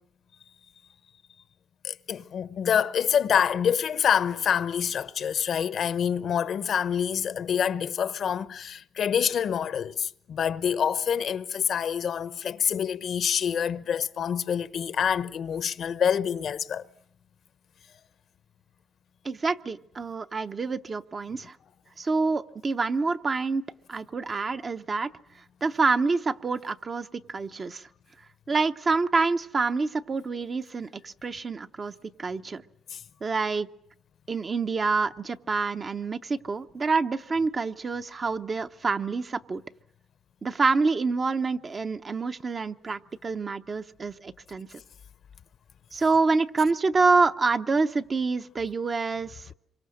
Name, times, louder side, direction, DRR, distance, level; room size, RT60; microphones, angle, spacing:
voice 1, 1.8-16.8 32.9-33.0, left 8 dB, 60° left, 0.9 m, -26 dB
voice 2, 19.2-21.6 22.0-23.6 23.9-25.1 25.6-27.9 28.5-31.9 32.2-32.6 33.2-33.7 34.3-39.6 40.4-44.8 45.9-49.5, right 4 dB, 35° right, 0.9 m, -27 dB
26.5 x 23.5 x 6.5 m
cardioid pair, 90°, 0 cm